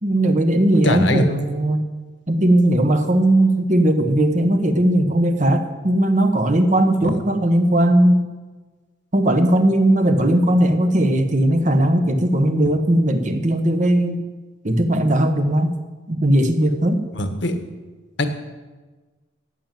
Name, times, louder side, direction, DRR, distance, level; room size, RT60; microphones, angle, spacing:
voice 1, 0.0-1.8 2.3-8.2 9.1-14.2 14.6-15.7 16.1-17.0, right 1 dB, 40° right, 7 dB, 1.2 m, -18 dB
voice 2, 0.8-1.2 7.0-7.2 17.1-17.6 18.2-18.3, left 1 dB, 65° left, 7 dB, 1.6 m, -21 dB
14.5 x 9.2 x 7.6 m, 1.3 s
head